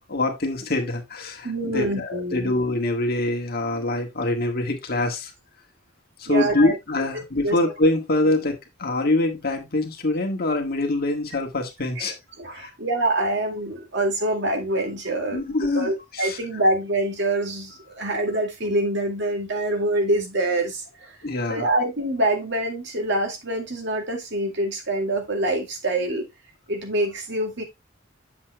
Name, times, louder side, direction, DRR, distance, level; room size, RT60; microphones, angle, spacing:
voice 1, 0.0-5.3 6.2-12.1 12.5-12.7 15.3-16.4 21.2-21.7, left 2 dB, 50° left, 1.7 m, -24 dB
voice 2, 1.4-2.5 6.3-6.8 7.1-7.6 12.0-12.1 12.4-20.8 21.5-26.2 26.7-27.6, right 1 dB, 65° right, 2.2 m, -25 dB
8.5 x 7.4 x 2.3 m
head